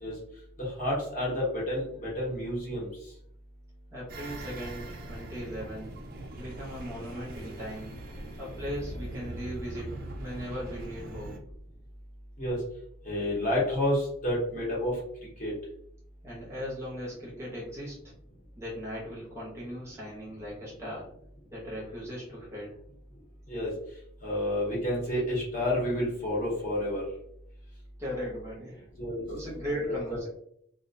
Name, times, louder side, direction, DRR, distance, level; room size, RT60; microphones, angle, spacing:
voice 1, 0.6-2.9 12.4-12.6 13.0-15.0 15.4-15.5 23.5-23.7 24.2-27.0 29.0-29.2 29.8-30.2, left 1 dB, 40° left, -5 dB, 0.9 m, -29 dB
voice 2, 3.9-6.0 6.4-8.0 8.4-11.4 16.2-18.1 18.6-21.1 21.5-22.8 28.0-28.9 29.2-30.3, equal, 15° right, -6 dB, 0.7 m, -38 dB
sound 1, 4.1-11.4, right 1 dB, 50° right, 0.3 m, -41 dB
2.4 x 2.1 x 2.5 m, 0.68 s
head